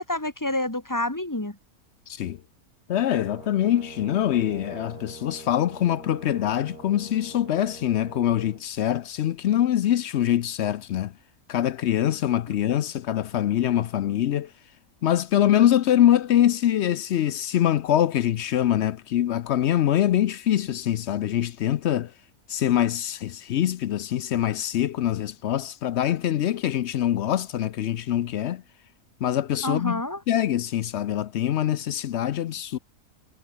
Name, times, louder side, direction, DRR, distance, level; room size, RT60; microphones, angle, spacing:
voice 1, 0.0-1.6 29.6-30.2, left 1 dB, 10° left, 1.7 m, -28 dB
voice 2, 2.1-2.4 2.9-11.1 11.5-14.5 15.0-22.1 22.5-28.6 29.2-30.0 30.3-32.8, left 11 dB, 65° left, 0.7 m, -24 dB
Brass instrument, 3.1-8.6, right 3 dB, 75° right, 4.5 m, -44 dB
omnidirectional pair, 1.6 m